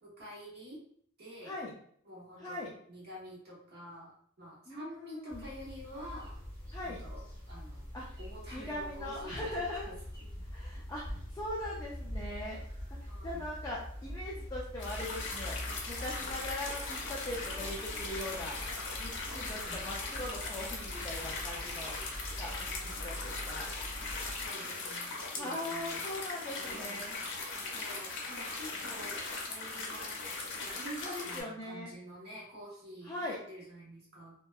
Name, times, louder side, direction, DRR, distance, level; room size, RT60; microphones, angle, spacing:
voice 1, 0.0-0.8 1.2-1.6 2.0-6.4 6.8-7.8 8.2-9.5 9.7-10.3 13.1-13.5 19.3-19.8 22.6-22.9 24.3-26.1 26.5-27.0 27.6-30.2 30.5-34.3, equal, 50° right, -5 dB, 0.9 m, -48 dB
voice 2, 2.4-2.7 4.7-5.4 6.7-7.0 7.9-8.0 8.5-9.9 10.5-12.6 12.9-15.6 15.9-18.6 19.0-22.0 22.4-23.7 25.3-27.2 31.0-31.9 33.1-33.4, left 1 dB, 15° left, -5 dB, 0.3 m, -40 dB
sound 1, 5.3-24.5, equal, 15° right, 1.2 m, -44 dB
sound 2, 14.8-31.4, left 3 dB, 60° left, 0.6 m, -39 dB
2.6 x 2.1 x 2.2 m, 0.62 s
head